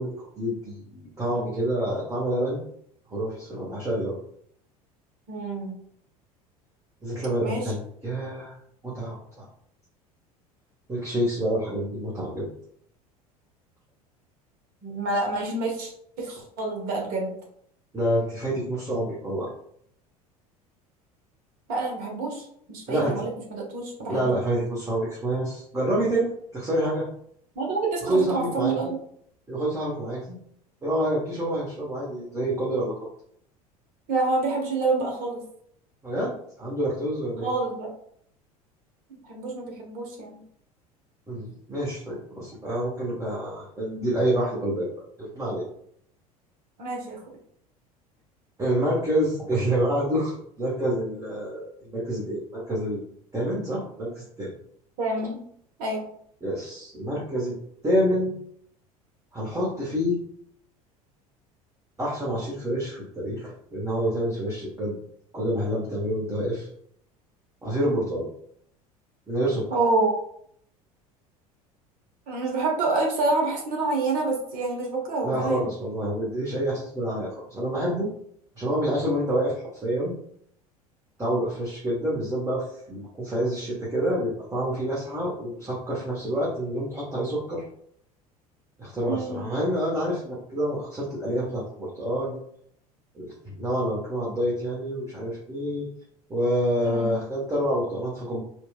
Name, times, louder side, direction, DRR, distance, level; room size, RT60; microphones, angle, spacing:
voice 1, 0.0-2.6 3.1-4.2 7.0-8.5 8.8-9.5 10.9-12.5 17.9-19.5 22.9-23.2 24.1-27.1 28.0-28.9 29.5-30.4 30.8-33.1 36.0-37.5 41.3-44.9 45.2-45.7 48.6-54.5 56.4-57.5 57.8-58.3 59.3-60.2 62.0-65.0 65.3-66.7 67.6-68.3 69.3-69.7 75.2-78.1 78.6-80.1 81.2-87.6 88.8-92.4 93.1-95.9 96.3-98.4, right 1 dB, 15° right, -6 dB, 1.1 m, -27 dB
voice 2, 5.3-5.7 7.4-7.7 14.8-15.9 16.2-17.3 21.7-24.3 27.5-29.0 34.1-35.4 37.4-37.9 39.1-40.4 46.8-47.2 55.0-55.4 55.8-56.1 69.7-70.1 72.3-75.6 89.1-89.5 96.8-97.2, right 3 dB, 45° right, 0 dB, 1.2 m, -27 dB
4.3 x 2.4 x 2.3 m, 0.67 s
figure-of-eight pair, 70°, 19 cm